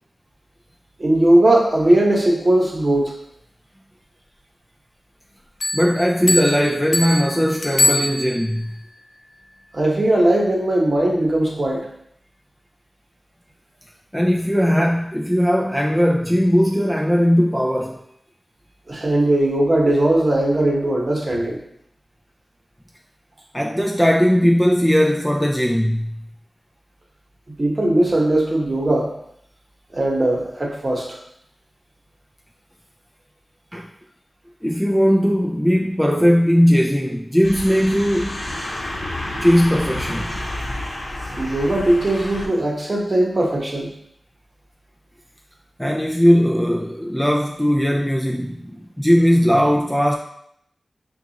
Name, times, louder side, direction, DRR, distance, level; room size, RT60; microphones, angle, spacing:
voice 1, 1.0-3.1 9.7-11.8 18.9-21.6 27.5-29.1 29.9-31.2 41.3-43.9, right 1 dB, 35° right, 1.0 m, -19 dB
Bell, 5.6-8.7, left 2 dB, 80° left, 0.5 m, -23 dB
voice 2, 5.7-8.7 14.1-18.0 23.5-26.2 33.7-33.9 34.6-38.4 39.4-40.4 45.8-50.2, equal, 5° left, 0.3 m, -18 dB
sound 1, 37.4-42.5, left 1 dB, 45° left, 1.0 m, -30 dB
5.9 x 2.3 x 2.8 m
wide cardioid pair, 105°, 0 cm